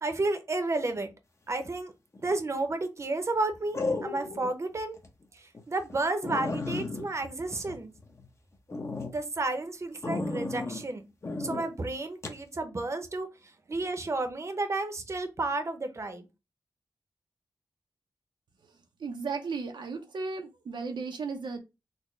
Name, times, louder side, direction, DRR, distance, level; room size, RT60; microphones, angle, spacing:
voice 1, 0.0-1.1 1.5-1.9 2.2-5.0 5.4-7.9 9.0-11.0 11.4-13.3 13.7-16.2, right 2 dB, 40° right, 0.7 m, -31 dB
sound 1, 2.1-2.5 3.7-4.5 5.0-5.1 5.5-5.6 5.9-6.0 6.2-8.3 8.7-9.1 10.0-10.8 11.2-11.6 12.2-12.4, left 3 dB, 35° left, 0.7 m, -34 dB
voice 2, 18.7-21.6, right 4 dB, 85° right, 0.6 m, -35 dB
4.1 x 2.1 x 3.1 m
wide cardioid pair, 85°, 8 cm